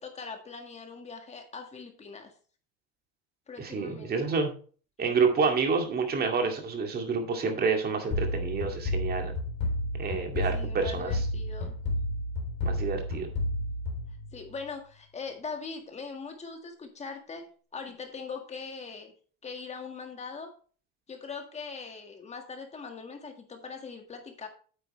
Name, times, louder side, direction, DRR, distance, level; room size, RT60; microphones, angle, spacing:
voice 1, 0.0-2.3 3.5-4.3 10.5-11.7 14.3-19.1 19.4-20.5 21.1-24.5, left 5 dB, 20° left, 4 dB, 1.8 m, -41 dB
voice 2, 3.6-4.5 5.0-9.3 10.0-11.1 12.6-13.3, right 5 dB, 30° right, 4 dB, 2.2 m, -28 dB
sound 1, 8.1-14.7, left 1 dB, 40° left, 3.8 m, -31 dB
9.2 x 8.2 x 3.2 m, 0.41 s
cardioid pair, 145°, 31 cm